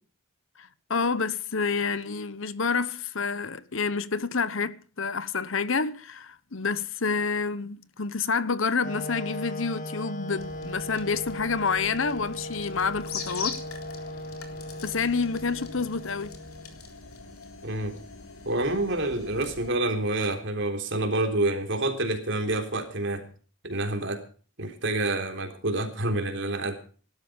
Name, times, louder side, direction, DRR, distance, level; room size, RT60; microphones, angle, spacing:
voice 1, 0.6-13.6 14.8-16.4, left 5 dB, 60° left, 1.0 m, -28 dB
Wind instrument woodwind instrument, 8.8-16.8, left 1 dB, 35° left, 1.9 m, -38 dB
sound 1, 10.4-19.7, left 5 dB, 90° left, 3.8 m, -42 dB
voice 2, 17.6-17.9 18.5-23.3 23.6-24.2 24.6-26.7, right 2 dB, 60° right, 3.6 m, -28 dB
18.5 x 12.5 x 5.1 m
head